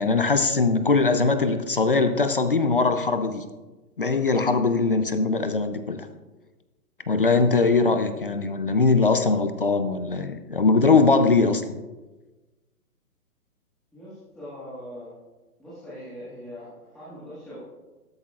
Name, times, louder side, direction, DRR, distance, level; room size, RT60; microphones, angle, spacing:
voice 1, 0.0-3.5 4.0-6.1 7.1-11.6, left 3 dB, 40° left, 9 dB, 0.4 m, -21 dB
voice 2, 13.9-15.1 15.6-17.6, equal, ahead, -14 dB, 1.4 m, -41 dB
13.0 x 10.5 x 2.4 m, 1.2 s
hypercardioid pair, 170°, 46 cm